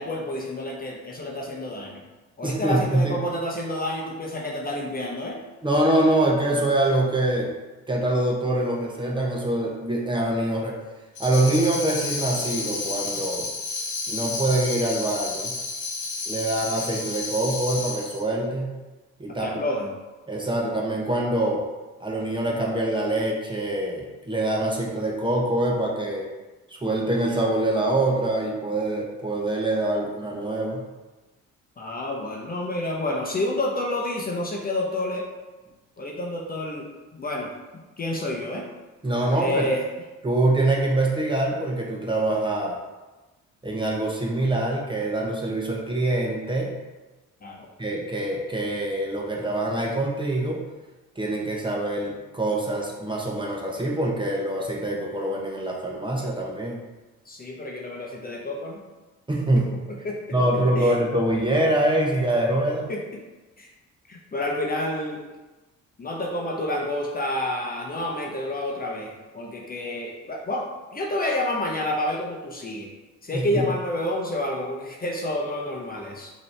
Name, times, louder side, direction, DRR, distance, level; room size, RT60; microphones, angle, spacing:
voice 1, 0.0-2.0 2.4-5.4 19.4-19.9 31.8-35.3 36.0-36.9 37.1-38.6 39.3-39.8 47.4-47.7 57.3-58.8 59.6-59.7 60.0-60.2 60.8-60.9 62.9-63.0 63.6-63.7 64.1-65.2 66.0-70.6 70.9-72.9 73.2-76.3, left 1 dB, 30° left, -1 dB, 0.8 m, -29 dB
voice 2, 2.4-3.2 5.6-7.5 7.9-10.8 11.2-13.5 14.1-15.6 16.3-18.7 19.2-19.5 20.3-21.6 22.0-26.3 26.7-30.8 39.0-39.6 40.2-42.8 43.6-46.8 47.8-50.6 51.2-56.8 59.3-59.9 60.3-62.9 73.3-73.6, right 1 dB, 15° right, -2 dB, 0.9 m, -24 dB
Tambourine, 11.2-18.2, left 3 dB, 75° left, 0.9 m, -31 dB
5.0 x 2.9 x 3.3 m, 1.2 s
cardioid pair, 90°, 30 cm